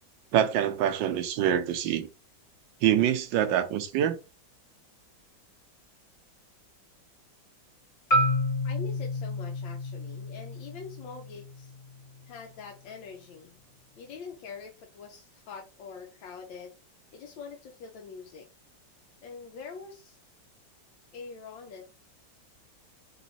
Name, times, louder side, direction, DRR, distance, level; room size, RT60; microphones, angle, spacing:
voice 1, 0.3-2.1 2.8-4.2, right 10 dB, 80° right, 1.3 m, -25 dB
Marimba xylophone, 8.1-12.3, left 1 dB, 30° left, 0.7 m, -30 dB
voice 2, 8.6-11.7 12.3-13.6 14.0-16.7 17.1-18.5 19.2-20.2 21.1-21.8, left 5 dB, 80° left, 1.5 m, -44 dB
4.0 x 3.1 x 4.1 m
omnidirectional pair, 2.0 m